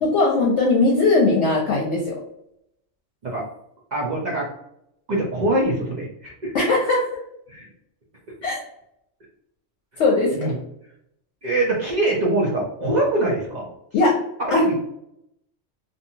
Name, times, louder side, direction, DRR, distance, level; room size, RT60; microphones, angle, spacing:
voice 1, 0.0-2.2 6.5-7.1 8.4-8.6 10.0-10.3 13.9-14.1 14.5-14.7, left 3 dB, 65° left, -2 dB, 0.9 m, -19 dB
voice 2, 3.9-4.5 5.1-6.5 7.5-7.7 10.3-10.5 11.4-13.7 14.4-14.7, right 1 dB, 45° right, -3 dB, 0.6 m, -23 dB
2.6 x 2.5 x 2.7 m, 0.77 s
omnidirectional pair, 1.3 m